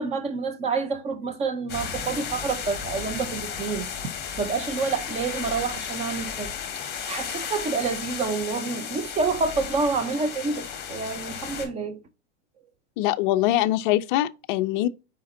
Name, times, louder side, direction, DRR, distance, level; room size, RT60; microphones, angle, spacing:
voice 1, 0.0-4.1 4.4-6.5 7.1-12.0, right 4 dB, 20° right, 0.5 m, -28 dB
sound 1, 1.7-11.7, left 7 dB, 30° left, 1.5 m, -34 dB
voice 2, 13.0-14.9, left 14 dB, 45° left, 0.4 m, -23 dB
5.0 x 3.9 x 2.6 m
hypercardioid pair, 130°, 35 cm